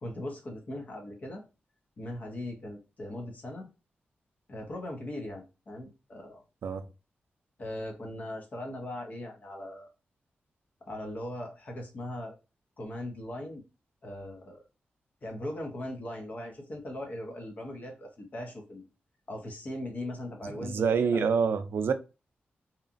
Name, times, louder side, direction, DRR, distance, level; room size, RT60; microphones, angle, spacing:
voice 1, 0.0-1.4 2.0-3.7 4.5-6.4 7.6-9.9 10.9-12.3 12.8-13.6 14.0-14.6 15.2-18.9 19.3-21.3, left 1 dB, 45° left, 0.9 m, -39 dB
voice 2, 20.4-21.9, right 6 dB, 75° right, 0.4 m, -27 dB
2.9 x 2.3 x 2.5 m
wide cardioid pair, 135°, 4 cm